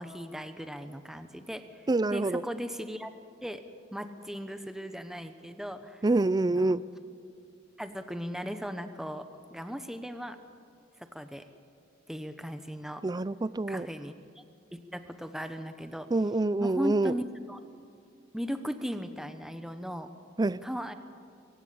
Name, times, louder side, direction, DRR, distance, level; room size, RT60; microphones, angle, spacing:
voice 1, 0.0-1.6 2.1-3.1 3.4-3.6 3.9-6.0 6.5-6.7 7.8-9.2 9.5-10.4 11.0-11.5 12.1-13.0 13.7-14.4 14.7-16.1 16.6-17.2 17.5-17.6 18.3-20.1 20.6-20.9, equal, ahead, 9 dB, 1.0 m, -37 dB
voice 2, 1.9-2.4 6.0-6.8 13.0-13.9 16.1-17.1 20.4-20.6, right 2 dB, 20° right, 19 dB, 0.4 m, -26 dB
24.5 x 16.5 x 8.5 m, 2.4 s
head